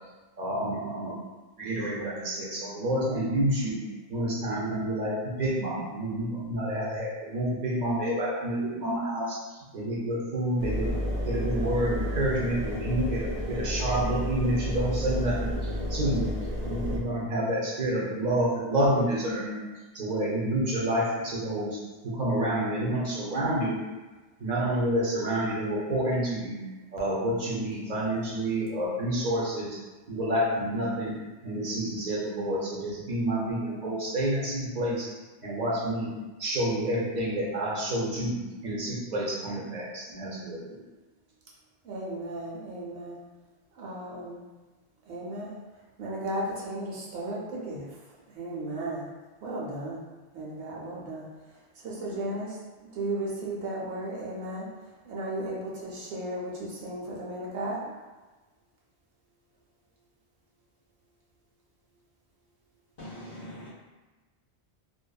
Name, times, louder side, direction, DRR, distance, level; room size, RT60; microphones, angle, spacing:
voice 1, 0.4-1.1 1.6-3.8 4.1-11.0 11.2-16.3 16.7-19.6 19.9-21.8 22.0-23.8 24.4-26.6 26.9-29.8 30.1-31.2 31.4-35.1 35.4-36.1 36.4-40.8, right 1 dB, 50° right, -5 dB, 0.7 m, -29 dB
Engine, 10.6-17.0, left 1 dB, 65° right, 0.3 m, -31 dB
voice 2, 41.8-43.2 43.8-44.4 45.1-45.6 46.0-47.9 48.3-49.1 49.4-50.0 50.3-51.3 51.8-52.6 53.0-54.7 55.1-57.8, right 1 dB, 80° right, -4 dB, 1.0 m, -35 dB
voice 3, 63.0-63.7, left 1 dB, 55° left, -8 dB, 0.5 m, -42 dB
2.6 x 2.2 x 2.2 m, 1.2 s
omnidirectional pair, 1.1 m